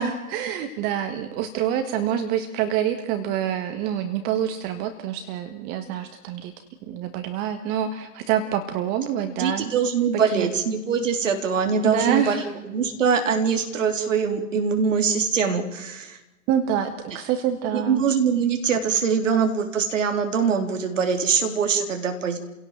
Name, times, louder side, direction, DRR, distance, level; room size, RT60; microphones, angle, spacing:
voice 1, 0.0-6.5 6.9-9.7 10.3-10.5 11.8-12.5 16.5-18.0, right 9 dB, 20° right, 8 dB, 1.4 m, -26 dB
voice 2, 9.4-12.4 12.6-16.2 17.7-22.4, right 6 dB, 55° right, 5 dB, 3.9 m, -23 dB
30.0 x 17.5 x 7.8 m, 1.1 s
figure-of-eight pair, 120°, 46 cm